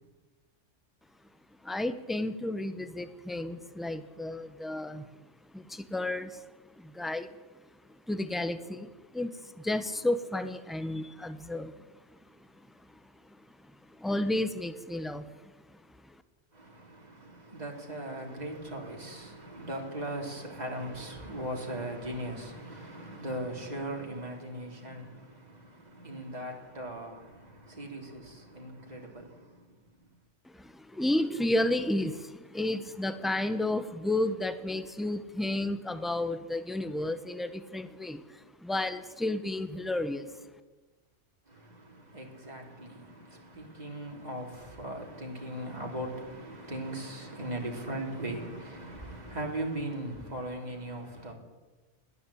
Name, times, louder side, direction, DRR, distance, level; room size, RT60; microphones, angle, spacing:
voice 1, 1.6-5.0 5.5-6.4 6.8-7.3 8.1-11.9 12.1-12.2 13.6-13.7 14.0-15.3 15.7-15.8 16.1-16.2 30.4-40.3, left 1 dB, ahead, 1.1 m, -32 dB
voice 2, 16.5-30.0 41.5-51.3, right 1 dB, 35° right, 3.7 m, -39 dB
20.5 x 14.5 x 8.6 m
omnidirectional pair, 1.2 m